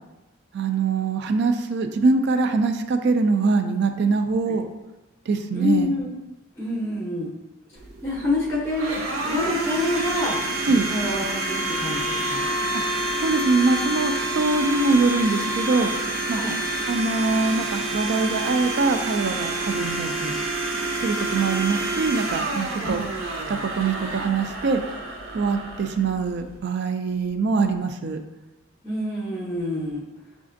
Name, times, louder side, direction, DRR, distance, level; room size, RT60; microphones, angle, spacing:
voice 1, 0.5-4.7 5.3-5.9 10.6-10.9 12.7-12.8 13.2-15.9 16.3-16.4 16.9-20.3 21.0-23.1 23.5-24.8 25.3-28.2, right 4 dB, 55° right, 7 dB, 0.3 m, -23 dB
voice 2, 5.5-6.1 6.6-7.3 8.0-9.0 9.2-10.4 10.7-12.5 16.3-16.5 22.8-23.0 28.8-30.1, left 2 dB, 10° left, -5 dB, 0.6 m, -27 dB
Domestic sounds home sounds, 7.8-26.6, right 2 dB, 70° right, 0.7 m, -28 dB
5.9 x 2.5 x 2.5 m, 1.0 s
head